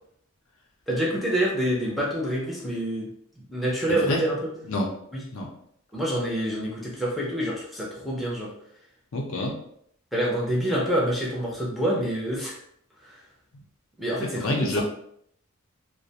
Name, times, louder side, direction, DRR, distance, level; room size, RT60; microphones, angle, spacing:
voice 1, 0.9-3.1 3.5-4.4 5.1-5.2 5.9-8.5 10.1-12.6 13.0-13.2 14.0-14.8, right 1 dB, ahead, -5 dB, 0.5 m, -27 dB
voice 2, 3.9-4.2 4.7-4.9 5.3-5.5 9.1-9.6 14.2-14.8, left 2 dB, 60° left, 0 dB, 0.5 m, -28 dB
2.3 x 2.1 x 2.7 m, 0.68 s
head